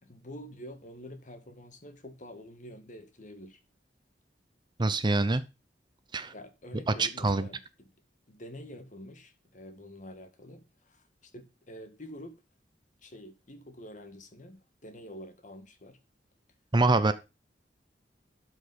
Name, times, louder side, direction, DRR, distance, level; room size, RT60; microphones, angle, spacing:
voice 1, 0.0-3.6 6.3-7.9 8.3-12.3 13.0-16.0 17.0-17.1, equal, 45° left, 1.7 m, -47 dB
voice 2, 4.8-5.4 6.1-6.3 6.9-7.5 16.7-17.1, right 3 dB, 25° right, 0.6 m, -25 dB
12.0 x 5.0 x 5.3 m
head